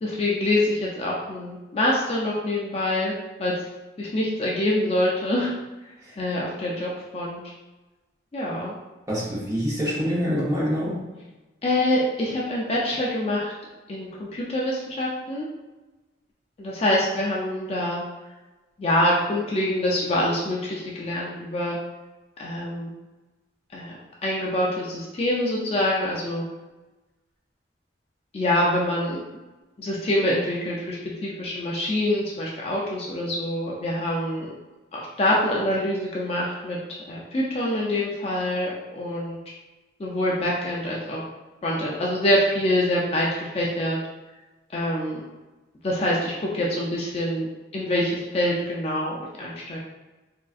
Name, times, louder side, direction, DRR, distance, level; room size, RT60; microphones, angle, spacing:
voice 1, 0.0-3.1 3.4-3.5 4.0-5.5 6.2-7.4 8.3-8.7 11.6-13.5 13.9-15.5 16.6-18.0 18.8-21.8 22.4-22.9 23.7-26.5 28.3-29.2 29.8-34.5 34.9-39.4 40.0-41.2 41.6-44.0 44.7-45.2 45.8-47.5 47.7-49.8, left 1 dB, 35° left, -4 dB, 0.3 m, -25 dB
voice 2, 9.1-11.0, equal, 15° right, -7 dB, 0.8 m, -26 dB
3.5 x 2.4 x 2.4 m, 1.1 s
head